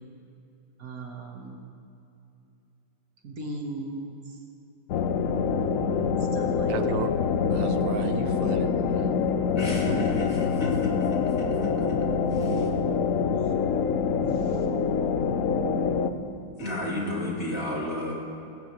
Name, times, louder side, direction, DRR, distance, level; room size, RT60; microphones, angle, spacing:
voice 1, 0.8-1.6 3.2-4.4 6.2-7.1 11.0-11.2 11.6-12.1 13.4-13.5 14.3-14.7, right 2 dB, 50° right, 1 dB, 1.7 m, -39 dB
sound 1, 4.9-16.1, left 6 dB, 65° left, 0.8 m, -25 dB
voice 2, 6.7-7.1 7.5-9.2, right 9 dB, 90° right, 10 dB, 1.4 m, -35 dB
voice 3, 9.6-10.9 11.4-11.5 12.5-12.7 16.6-18.2, left 1 dB, 45° left, -3 dB, 3.1 m, -31 dB
19.5 x 17.0 x 3.1 m, 2.7 s
omnidirectional pair, 2.0 m